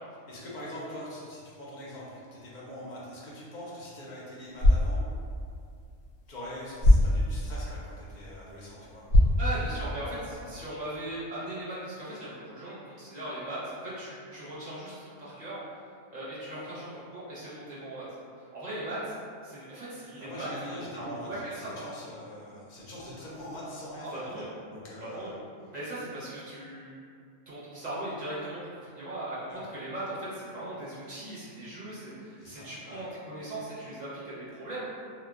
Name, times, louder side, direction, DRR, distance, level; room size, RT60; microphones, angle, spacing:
voice 1, 0.3-5.0 6.3-9.4 10.1-10.5 20.2-24.3 24.7-25.4 29.5-29.6 32.4-33.0, left 1 dB, 50° left, -6 dB, 0.5 m, -43 dB
sound 1, 4.4-10.4, left 1 dB, 85° left, 1.0 m, -26 dB
voice 2, 9.4-15.6 16.1-18.1 18.4-19.2 19.4-20.5 20.9-21.9 24.0-24.5 25.0-25.4 25.7-27.0 27.5-34.8, right 1 dB, 40° right, -10 dB, 0.6 m, -38 dB
2.1 x 2.1 x 3.5 m, 2.3 s
omnidirectional pair, 1.3 m